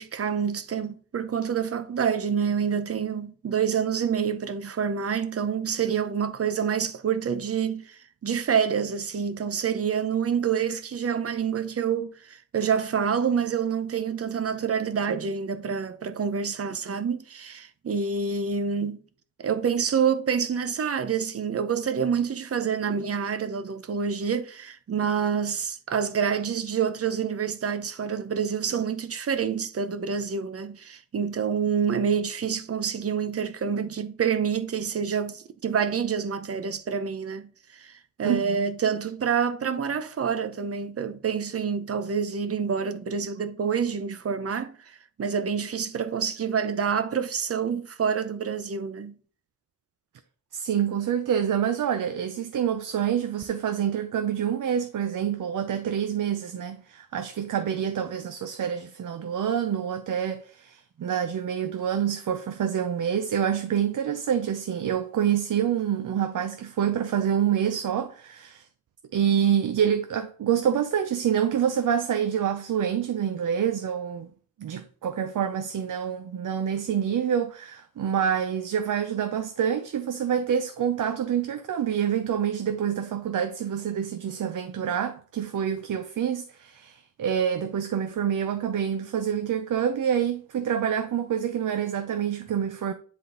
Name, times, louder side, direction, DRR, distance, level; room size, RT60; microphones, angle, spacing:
voice 1, 0.0-19.0 19.4-37.9 38.2-49.1, right 7 dB, 50° right, 0.8 m, -27 dB
voice 2, 38.2-38.7 50.5-68.7 69.1-74.3 74.6-92.9, right 8 dB, 80° right, 0.7 m, -27 dB
10.0 x 3.8 x 3.9 m
wide cardioid pair, 150°, 31 cm